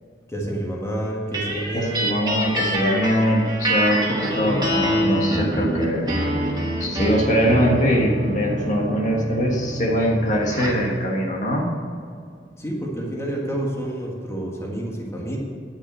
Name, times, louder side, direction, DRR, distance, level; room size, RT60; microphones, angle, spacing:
voice 1, 0.3-2.2 12.6-15.4, right 1 dB, 15° left, -2 dB, 1.6 m, -28 dB
sound 1, 1.3-10.9, right 1 dB, 25° right, 1.7 m, -26 dB
voice 2, 1.7-6.1 6.8-11.7, equal, 45° left, -1 dB, 1.6 m, -22 dB
10.5 x 6.4 x 7.7 m, 2.2 s
head